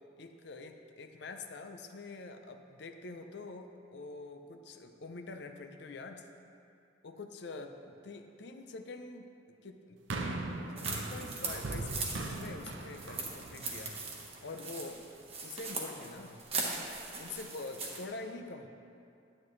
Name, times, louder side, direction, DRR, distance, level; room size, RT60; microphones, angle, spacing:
voice 1, 0.0-6.3 7.0-9.3 9.6-14.0 14.4-15.1 15.4-16.4 17.2-18.7, left 3 dB, 65° left, 6 dB, 0.5 m, -45 dB
sound 1, 10.1-14.4 15.2-15.3, right 2 dB, 75° right, 0.6 m, -40 dB
sound 2, 10.8-18.0, right 3 dB, 35° right, 1.1 m, -40 dB
9.6 x 9.3 x 3.1 m, 2.5 s
head